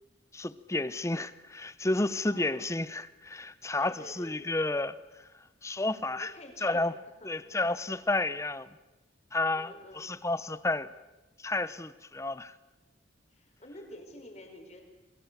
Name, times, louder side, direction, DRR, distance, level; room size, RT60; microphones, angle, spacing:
voice 1, 0.3-5.0 5.6-6.3 6.6-6.9 7.2-8.7 9.3-10.9 11.4-12.5, left 2 dB, 15° left, 15 dB, 0.8 m, -31 dB
voice 2, 2.3-2.6 3.8-4.6 6.1-6.9 7.2-7.4 9.5-10.2 13.3-14.8, left 1 dB, 40° left, 4 dB, 4.6 m, -49 dB
28.0 x 21.5 x 6.7 m, 1.1 s
head